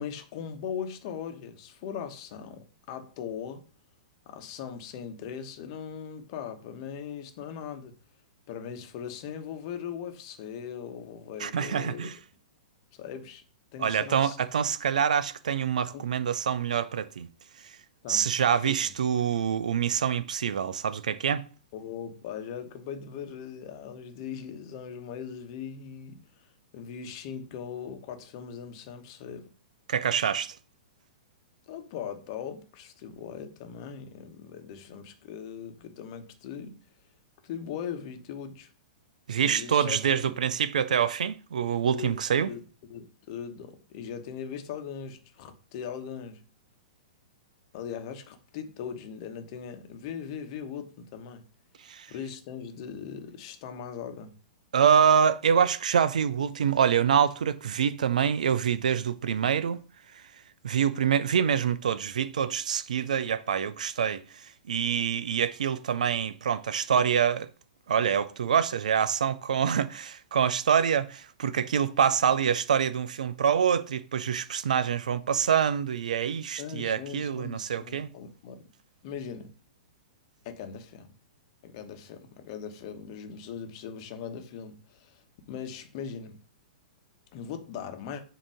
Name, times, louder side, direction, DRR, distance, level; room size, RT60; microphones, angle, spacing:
voice 1, 0.0-3.7 4.3-7.9 8.5-12.1 12.9-13.4 13.7-14.7 15.9-16.0 18.0-18.3 18.6-18.8 21.7-29.5 31.7-36.8 37.4-38.7 39.4-40.3 41.9-42.6 42.9-46.4 47.7-51.4 52.1-54.4 76.6-78.7 79.0-79.5 80.4-81.1 81.6-86.4 87.3-88.2, left 7 dB, 45° left, 1.1 m, -39 dB
voice 2, 11.4-12.1 13.8-17.3 18.1-21.5 29.9-30.6 39.3-42.5 51.9-52.1 54.7-59.8 60.6-64.2 64.7-67.5 67.9-78.1, right 8 dB, 65° right, 0.5 m, -26 dB
7.4 x 2.9 x 4.9 m
figure-of-eight pair, 105°, 4 cm